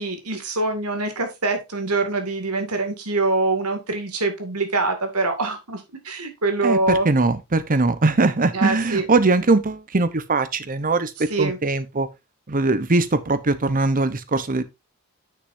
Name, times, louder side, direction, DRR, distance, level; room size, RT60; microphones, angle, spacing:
voice 1, 0.0-7.1 8.5-9.0 11.3-11.6, right 3 dB, 85° right, 2.3 m, -24 dB
voice 2, 6.6-12.1 12.5-14.6, right 3 dB, 40° right, 0.9 m, -21 dB
9.8 x 6.5 x 2.7 m
head